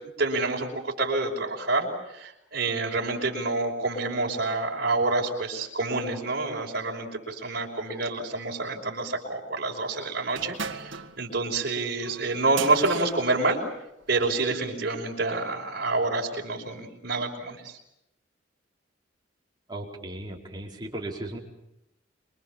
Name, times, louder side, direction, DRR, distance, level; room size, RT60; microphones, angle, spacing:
voice 1, 0.2-13.6 14.1-17.8, right 3 dB, 55° right, -1 dB, 5.6 m, -28 dB
sound 1, 10.3-14.4, right 6 dB, 90° right, 1.9 m, -39 dB
voice 2, 19.7-21.4, right 1 dB, 25° right, -1 dB, 4.7 m, -36 dB
27.0 x 24.0 x 7.3 m, 0.85 s
head